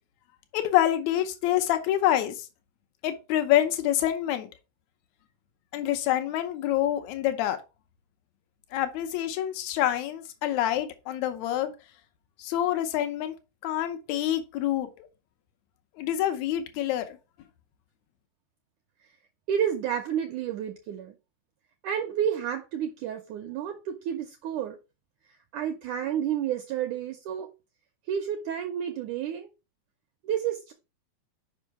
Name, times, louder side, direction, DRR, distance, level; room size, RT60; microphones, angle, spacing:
voice 1, 0.5-2.5 3.0-4.5 5.7-7.6 8.7-11.7 12.4-13.3 13.6-15.1 16.0-17.1, left 12 dB, 85° left, 1.6 m, -26 dB
voice 2, 19.5-21.1 21.8-24.8 25.5-27.5 28.1-29.5 30.2-30.7, right 9 dB, 80° right, 1.8 m, -30 dB
5.4 x 5.4 x 4.7 m
omnidirectional pair, 4.3 m